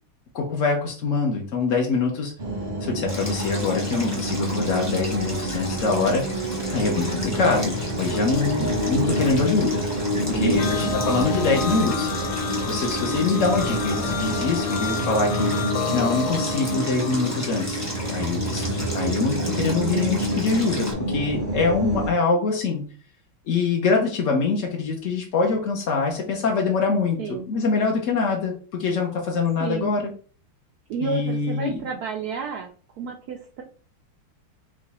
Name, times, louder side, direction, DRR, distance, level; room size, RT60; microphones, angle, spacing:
voice 1, 0.3-2.3 2.8-6.3 6.7-9.9 10.3-12.2 12.6-15.5 15.9-22.8 23.5-30.1 31.0-31.8, left 4 dB, 65° left, 0 dB, 0.8 m, -24 dB
sound 1, 2.4-22.1, right 1 dB, 40° right, 0.7 m, -27 dB
Stream, 3.1-20.9, equal, 15° left, 0.6 m, -36 dB
voice 2, 10.3-11.0 27.2-27.4 29.6-29.9 30.9-32.7 33.0-33.6, right 6 dB, 85° right, 1 dB, 0.8 m, -30 dB
sound 2, 10.6-17.4, left 7 dB, 85° left, 1.5 m, -31 dB
4.9 x 2.3 x 4.1 m, 0.40 s
omnidirectional pair, 2.3 m